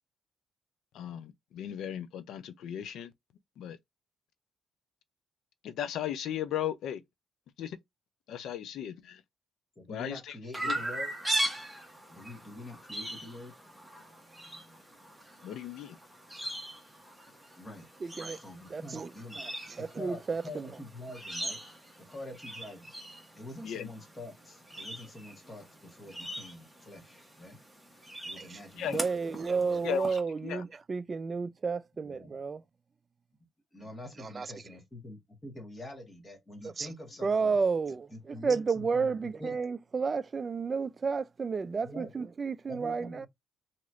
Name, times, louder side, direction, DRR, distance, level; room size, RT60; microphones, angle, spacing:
voice 1, 0.9-3.1 3.6-3.8 5.6-7.0 7.6-7.8 8.3-9.2 9.9-10.4 10.6-10.7 15.4-16.0 23.6-23.9 28.8-29.0 29.8-30.6, left 10 dB, 80° left, 0.4 m, -36 dB
voice 2, 9.8-11.1 12.1-13.5 17.5-17.9 18.4-19.4 19.7-21.6 22.0-22.9 23.3-27.6 28.2-29.0 29.3-29.9 32.0-32.3 33.7-37.6 38.1-39.6 41.8-42.1 42.7-43.3, left 1 dB, 25° left, 1.4 m, -46 dB
Chirp tweet, 10.5-30.2, right 1 dB, ahead, 1.1 m, -40 dB
voice 3, 18.0-18.4 18.7-19.1 19.3-20.7 28.4-32.6 34.2-34.7 36.6-36.9 37.2-43.3, right 5 dB, 35° right, 0.3 m, -32 dB
3.0 x 2.8 x 2.4 m
cardioid pair, 90°, 0 cm